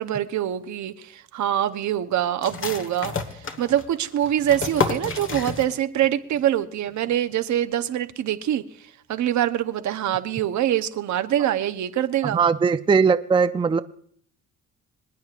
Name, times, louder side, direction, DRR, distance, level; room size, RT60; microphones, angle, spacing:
voice 1, 0.0-3.1 3.6-8.6 9.1-12.4, right 11 dB, 70° right, 0.9 m, -24 dB
sound 1, 2.4-6.1 6.3-6.4 6.9-7.3, left 5 dB, 45° left, 1.4 m, -30 dB
voice 2, 12.3-13.8, right 5 dB, 15° right, 0.4 m, -19 dB
26.0 x 9.4 x 2.5 m
cardioid pair, 90°, 30 cm